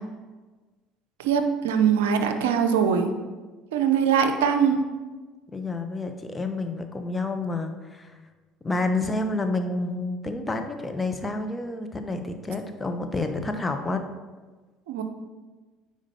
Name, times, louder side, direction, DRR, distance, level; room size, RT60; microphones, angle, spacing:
voice 1, 1.2-3.1 3.7-4.8 14.9-15.0, right 7 dB, 75° right, 7 dB, 0.6 m, -22 dB
voice 2, 5.5-8.2 8.6-14.0, left 2 dB, 20° left, 6 dB, 0.8 m, -29 dB
8.8 x 5.0 x 2.8 m, 1.3 s
hypercardioid pair, 65°, 0 cm